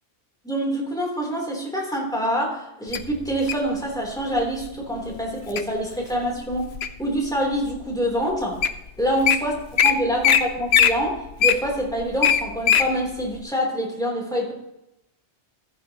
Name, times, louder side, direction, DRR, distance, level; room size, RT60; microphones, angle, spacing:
voice 1, 0.4-6.7 7.0-8.6 9.0-9.6 9.8-14.5, equal, 5° left, -3 dB, 3.4 m, -26 dB
Wild animals, 2.9-3.7 4.4-4.7 5.2-5.6 6.1-7.1 7.7-7.8 8.4-8.5 8.6-8.8 9.1-9.4 9.8-9.9 10.2-10.4 10.7-12.9 13.3-13.4, left 8 dB, 65° left, 0.9 m, -19 dB
14.5 x 11.0 x 3.0 m, 0.89 s
omnidirectional pair, 1.2 m